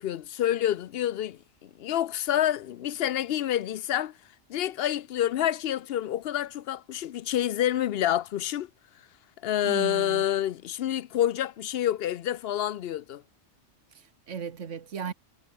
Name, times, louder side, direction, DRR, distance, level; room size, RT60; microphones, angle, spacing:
voice 1, 0.0-4.1 4.5-8.7 9.4-13.2, left 11 dB, 65° left, 0.7 m, -28 dB
voice 2, 9.6-10.2 13.9-15.1, right 7 dB, 90° right, 1.7 m, -36 dB
omnidirectional pair, 1.2 m